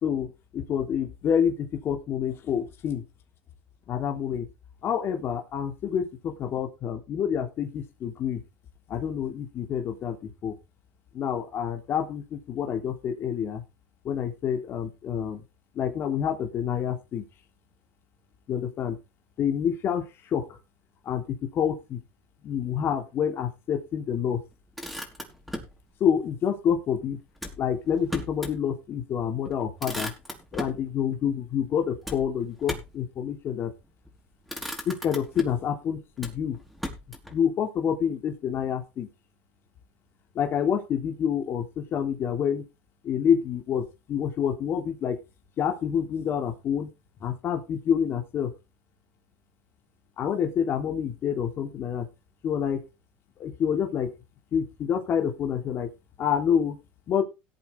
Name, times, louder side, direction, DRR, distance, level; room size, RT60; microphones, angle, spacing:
voice 1, 0.0-3.0 3.9-4.5 4.8-8.4 8.9-10.6 11.1-13.6 14.0-15.4 15.8-17.2 18.5-19.0 19.4-20.6 21.1-22.0 22.4-24.4 26.0-27.2 27.6-30.1 30.5-33.7 34.9-36.6 37.3-39.1 40.4-42.6 43.0-45.2 45.6-46.9 47.2-48.5 50.2-52.1 52.4-52.8 53.4-54.1 54.5-55.9 56.2-56.8 57.1-57.2, left 8 dB, 45° left, 3 dB, 3.6 m, -27 dB
Motor vehicle (road), 24.5-25.8 27.4-28.6 29.0-29.1 29.4-30.8 32.0-33.0 33.9-34.1 34.5-35.7 36.2-37.4, equal, ahead, 4.6 m, -37 dB
17.5 x 8.4 x 3.7 m, 0.27 s
supercardioid pair, 110°, 6 cm